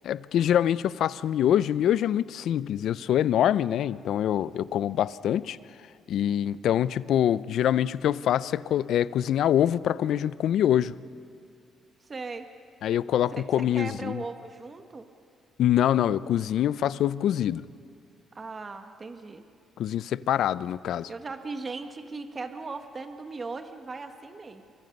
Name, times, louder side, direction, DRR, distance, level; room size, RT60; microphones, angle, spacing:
voice 1, 0.0-5.6 6.1-10.9 12.8-14.2 15.6-17.6 19.8-21.1, left 10 dB, 75° left, 18 dB, 0.5 m, -25 dB
voice 2, 12.0-12.5 13.3-15.1 18.3-19.4 21.1-24.6, right 3 dB, 35° right, 7 dB, 1.5 m, -38 dB
28.0 x 24.5 x 5.4 m, 2.3 s
cardioid pair, 90°, 0 cm